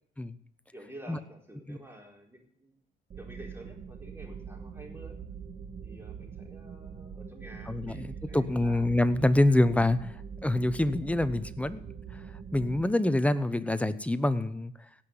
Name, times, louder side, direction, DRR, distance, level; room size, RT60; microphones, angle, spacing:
voice 1, 0.7-2.7 3.2-5.2 5.8-8.8, right 1 dB, 10° right, 0 dB, 4.4 m, -49 dB
sound 1, 3.1-12.8, right 6 dB, 45° right, 1.6 m, -43 dB
voice 2, 7.7-10.1 10.4-11.8 12.5-14.7, left 1 dB, 5° left, 13 dB, 0.9 m, -26 dB
17.5 x 6.0 x 9.5 m, 0.67 s
cardioid pair, 90°, 20 cm